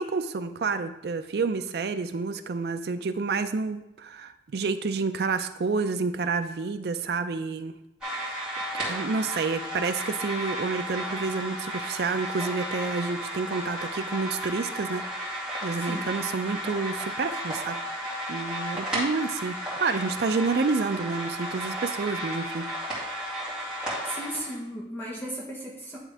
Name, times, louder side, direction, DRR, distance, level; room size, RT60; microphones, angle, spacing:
voice 1, 0.0-7.7 8.3-8.4 8.7-15.1 15.6-17.8 18.3-22.7, right 4 dB, 60° right, 10 dB, 0.4 m, -29 dB
sound 1, 8.0-24.6, equal, 5° right, 2.3 m, -33 dB
voice 2, 15.7-16.1 24.0-26.0, right 1 dB, 10° left, -5 dB, 1.0 m, -36 dB
10.0 x 3.6 x 3.4 m, 0.88 s
head